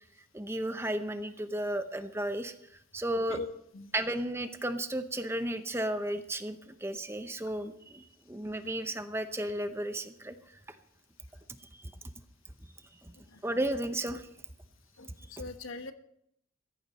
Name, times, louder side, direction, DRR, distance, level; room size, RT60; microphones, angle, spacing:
voice 1, 0.3-2.5 2.9-3.4 3.9-10.3 11.8-11.9 13.4-14.3, right 1 dB, 10° right, 9 dB, 0.8 m, -33 dB
voice 2, 3.3-3.9 15.0-15.9, left 3 dB, 80° left, 9 dB, 1.1 m, -41 dB
15.5 x 14.5 x 4.2 m, 0.75 s
head